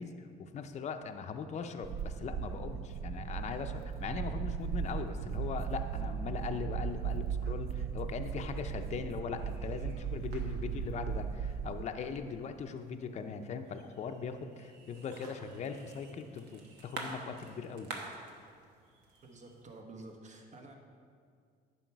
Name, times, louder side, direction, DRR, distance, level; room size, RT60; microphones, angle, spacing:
voice 1, 0.0-17.9, left 5 dB, 40° left, 6 dB, 0.6 m, -40 dB
sound 1, 1.8-11.8, right 7 dB, 65° right, 0.5 m, -37 dB
sound 2, 9.4-19.6, right 3 dB, 85° right, 1.2 m, -50 dB
voice 2, 19.2-20.8, right 2 dB, 45° right, 2 dB, 1.4 m, -50 dB
10.5 x 5.7 x 4.6 m, 2.2 s
cardioid pair, 110°, 17 cm